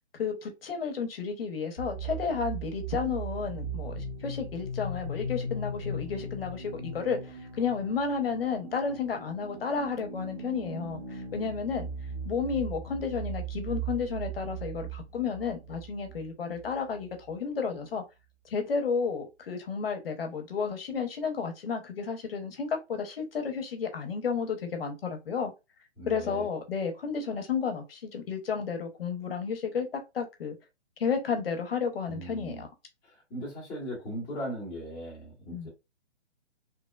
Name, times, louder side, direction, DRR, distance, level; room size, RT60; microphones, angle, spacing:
voice 1, 0.1-11.9 12.2-18.0 18.4-25.5 26.1-30.5 31.0-32.7 35.5-35.7, left 5 dB, 55° left, 0.8 m, -32 dB
sound 1, 1.8-17.3, right 2 dB, 15° right, 1.0 m, -38 dB
voice 2, 26.0-26.5 32.1-32.6 33.0-35.7, equal, 10° left, 0.9 m, -38 dB
2.9 x 2.0 x 2.2 m
hypercardioid pair, 160°, 35 cm